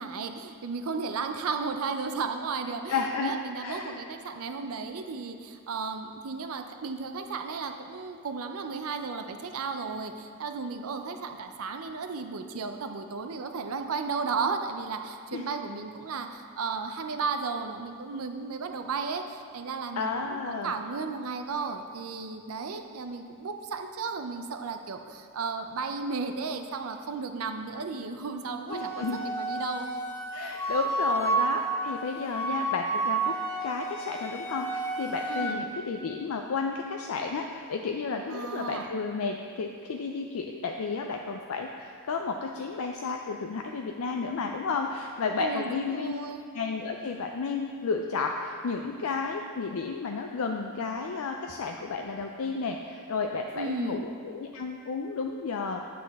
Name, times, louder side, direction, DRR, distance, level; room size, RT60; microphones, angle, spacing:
voice 1, 0.0-29.9 35.3-35.7 38.3-38.9 45.4-46.5 53.5-54.1, right 4 dB, 65° right, 6 dB, 0.5 m, -34 dB
voice 2, 2.9-3.3 3.6-4.0 15.3-15.5 20.0-20.8 28.7-29.2 30.3-33.3 33.6-46.1 46.5-55.8, left 4 dB, 65° left, 3 dB, 0.4 m, -32 dB
Wind instrument woodwind instrument, 28.7-35.5, right 2 dB, 10° left, 1.4 m, -31 dB
8.5 x 7.8 x 3.5 m, 2.2 s
head